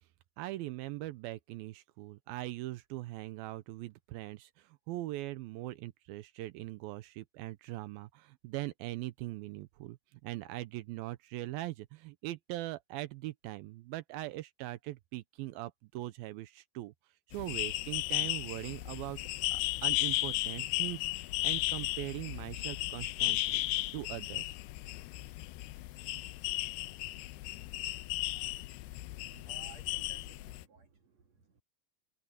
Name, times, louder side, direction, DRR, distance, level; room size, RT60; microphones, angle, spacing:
voice 1, 0.4-16.9 17.3-19.2 19.5-23.6 23.9-24.5, right 17 dB, 90° right, 2.1 m, -41 dB
sound 1, 17.3-30.6, left 19 dB, 85° left, 2.3 m, -35 dB
voice 2, 29.3-31.6, right 5 dB, 45° right, 2.8 m, -57 dB
omnidirectional pair, 5.1 m